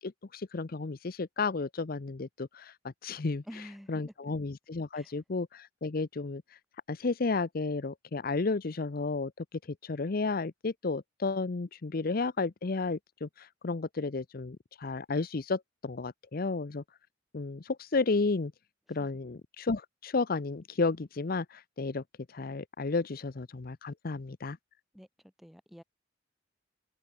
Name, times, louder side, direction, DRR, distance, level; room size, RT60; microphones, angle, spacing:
voice 1, 0.0-3.4 3.9-6.4 6.9-9.4 9.8-16.8 17.3-18.5 18.9-22.0 22.3-24.6, left 3 dB, 50° left, 0.7 m, -32 dB
voice 2, 3.4-3.9 4.2-4.3 4.9-5.1 18.9-19.1 24.9-25.8, equal, ahead, 2.1 m, -49 dB
head